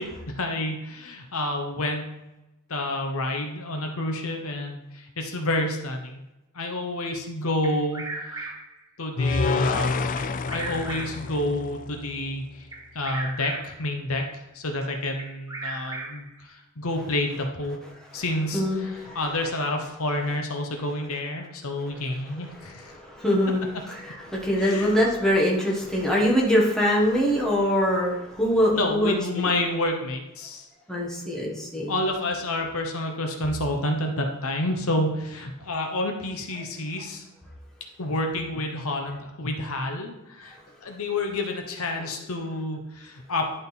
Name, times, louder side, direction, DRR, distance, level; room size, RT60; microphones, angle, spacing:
voice 1, 0.0-2.1 2.7-6.2 6.5-8.5 9.0-10.1 10.5-12.7 12.9-17.8 18.1-22.9 24.6-24.9 28.7-30.7 31.9-37.2 38.0-40.6 40.8-43.5, left 1 dB, 70° left, 3 dB, 1.0 m, -29 dB
Bird vocalization bird call bird song, 7.6-8.8 10.2-11.4 12.7-13.9 15.2-16.4, right 3 dB, 15° right, 0.9 m, -37 dB
sound 1, 9.2-12.4, left 4 dB, 35° left, 0.3 m, -28 dB
voice 2, 18.5-19.2 22.9-29.7 30.9-31.9, equal, 5° left, -4 dB, 1.4 m, -23 dB
11.0 x 3.8 x 4.1 m, 0.96 s
head